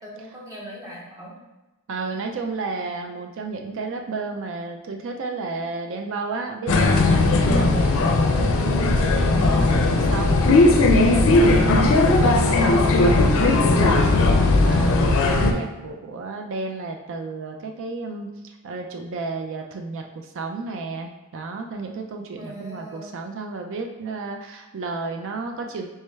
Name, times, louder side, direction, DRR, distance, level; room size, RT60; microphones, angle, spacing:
voice 1, 0.0-1.4 22.4-23.2, right 1 dB, 15° right, -3 dB, 0.8 m, -39 dB
voice 2, 1.9-20.0 20.3-25.8, right 3 dB, 60° right, 3 dB, 0.4 m, -32 dB
sound 1, 6.7-15.5, left 2 dB, 65° left, 0.4 m, -17 dB
3.3 x 3.2 x 3.2 m, 1.1 s
head